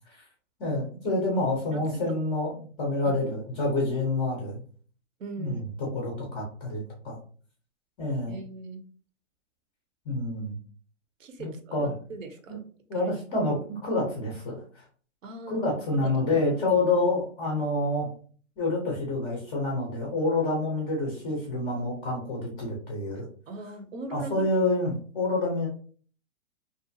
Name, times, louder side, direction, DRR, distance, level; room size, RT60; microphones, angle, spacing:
voice 1, 0.6-2.5 2.8-4.6 5.4-7.2 8.0-8.4 10.1-10.6 11.4-11.9 12.5-12.6 12.9-14.8 15.5-18.1 18.6-23.3 24.1-25.7, left 2 dB, 15° left, -2 dB, 0.4 m, -28 dB
voice 2, 1.7-2.1 3.0-3.1 5.2-5.6 8.3-8.8 11.2-12.6 12.9-13.1 15.2-15.6 15.9-16.5 23.5-24.5, right 3 dB, 80° right, 7 dB, 0.8 m, -40 dB
2.6 x 2.3 x 2.5 m, 0.44 s
hypercardioid pair, 140°, 38 cm